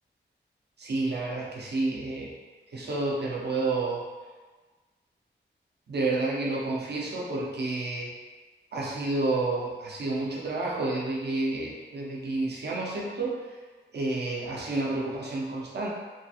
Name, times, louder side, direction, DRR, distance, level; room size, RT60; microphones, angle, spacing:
voice 1, 0.8-2.3 2.7-4.0 5.9-8.1 8.7-13.5 13.9-15.9, right 2 dB, 60° right, -3 dB, 0.6 m, -30 dB
2.9 x 2.4 x 2.8 m, 1.4 s
wide cardioid pair, 100°, 20 cm